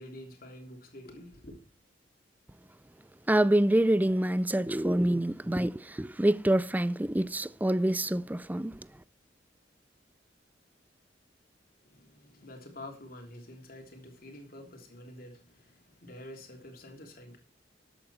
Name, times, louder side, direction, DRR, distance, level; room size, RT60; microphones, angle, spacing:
voice 1, 0.0-1.6 11.8-17.4, left 1 dB, 55° left, 3.2 m, -48 dB
voice 2, 3.3-8.8, right 1 dB, 10° right, 0.4 m, -26 dB
13.0 x 8.6 x 4.2 m
head